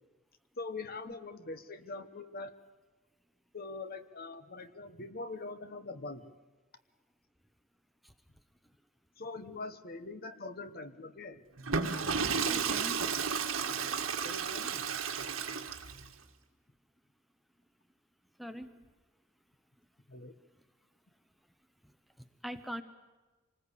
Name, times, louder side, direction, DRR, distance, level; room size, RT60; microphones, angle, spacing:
voice 1, 0.6-2.5 3.5-6.2 9.2-11.4 13.7-13.9 14.2-14.8 20.1-20.3, left 3 dB, 45° left, 11 dB, 1.1 m, -43 dB
Water / Toilet flush, 11.6-16.1, right 6 dB, 80° right, 1.8 m, -33 dB
voice 2, 12.5-13.0 18.4-18.7 22.4-22.8, equal, ahead, 8 dB, 0.8 m, -41 dB
25.5 x 19.5 x 8.4 m, 1.2 s
head